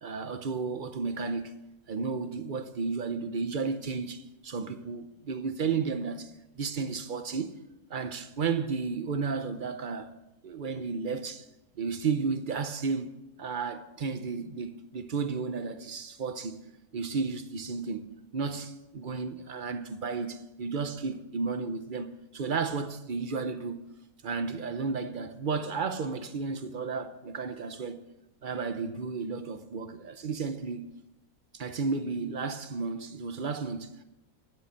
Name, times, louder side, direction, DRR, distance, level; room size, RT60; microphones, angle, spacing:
voice 1, 0.0-1.6 1.9-7.5 7.9-10.1 10.4-11.5 11.8-16.6 16.9-18.1 18.3-23.8 24.2-28.0 28.4-30.9 31.5-34.0, right 5 dB, 45° right, 0.7 m, -33 dB
12.0 x 7.9 x 7.1 m
omnidirectional pair, 1.5 m